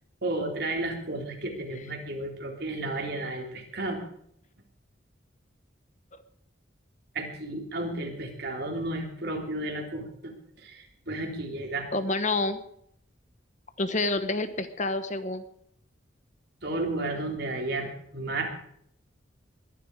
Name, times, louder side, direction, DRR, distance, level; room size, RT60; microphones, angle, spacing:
voice 1, 0.2-4.0 7.1-11.9 16.6-17.9 18.1-18.5, right 2 dB, 60° right, 1 dB, 3.6 m, -33 dB
voice 2, 11.9-12.6 13.8-15.4, left 2 dB, 40° left, 10 dB, 1.2 m, -28 dB
21.0 x 11.5 x 4.9 m, 0.68 s
head